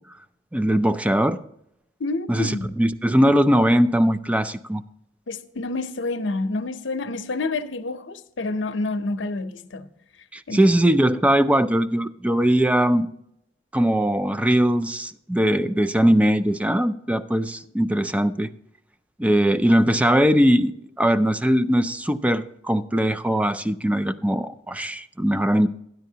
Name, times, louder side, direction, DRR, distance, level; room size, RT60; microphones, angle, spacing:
voice 1, 0.5-1.4 2.3-4.8 10.3-13.1 13.7-18.5 19.2-25.7, equal, 5° right, 0.4 m, -20 dB
voice 2, 2.0-2.7 5.3-9.9 10.5-10.6, left 3 dB, 80° left, 0.7 m, -28 dB
12.5 x 10.5 x 2.8 m
head